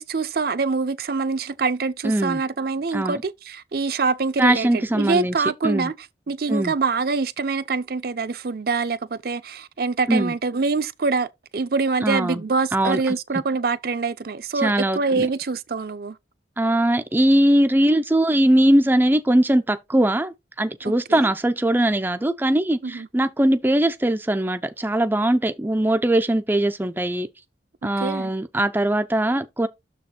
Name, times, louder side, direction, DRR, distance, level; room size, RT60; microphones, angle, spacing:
voice 1, 0.0-6.0 6.3-16.2 21.1-21.3 22.8-23.1 28.0-28.3, right 4 dB, 55° right, 0.6 m, -25 dB
voice 2, 2.0-2.4 2.9-3.2 4.4-5.4 5.6-5.9 6.5-6.7 10.1-10.3 12.0-12.4 12.7-13.2 14.5-15.3 16.6-27.3 27.8-29.7, right 1 dB, 10° right, 0.4 m, -21 dB
6.9 x 4.1 x 4.3 m
head